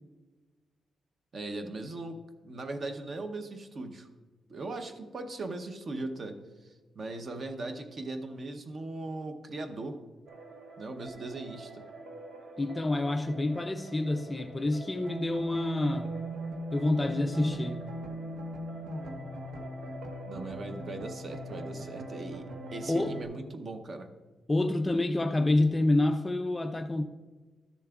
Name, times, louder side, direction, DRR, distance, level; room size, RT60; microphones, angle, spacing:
voice 1, 1.3-2.2 2.4-4.1 4.5-6.4 6.6-10.0 10.8-11.8 20.3-22.4 22.7-24.1, right 2 dB, 35° right, 7 dB, 0.7 m, -39 dB
sound 1, 10.3-23.2, right 1 dB, 85° right, 1.1 m, -40 dB
voice 2, 12.6-16.1 16.7-17.8 22.9-23.2 24.5-27.0, left 2 dB, 15° left, 7 dB, 0.3 m, -28 dB
13.0 x 7.0 x 2.3 m, 1.3 s
wide cardioid pair, 170°, 0 cm